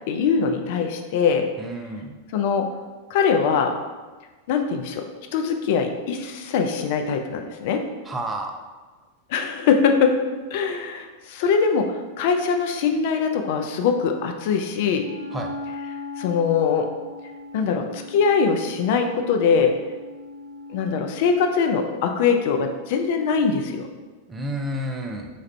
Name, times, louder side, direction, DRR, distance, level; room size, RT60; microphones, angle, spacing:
voice 1, 0.1-1.4 2.3-2.7 3.1-3.7 4.5-5.1 5.3-7.8 9.3-10.2 10.5-15.1 16.2-16.9 17.5-19.7 20.7-23.9, left 6 dB, 50° left, 5 dB, 0.3 m, -22 dB
voice 2, 1.6-2.1 8.0-8.5 15.3-15.5 24.3-25.3, right 1 dB, 15° right, 2 dB, 0.4 m, -30 dB
Wind instrument woodwind instrument, 14.9-21.6, left 3 dB, 75° left, 0.8 m, -38 dB
4.1 x 2.4 x 3.2 m, 1.3 s
figure-of-eight pair, 90°, 0 cm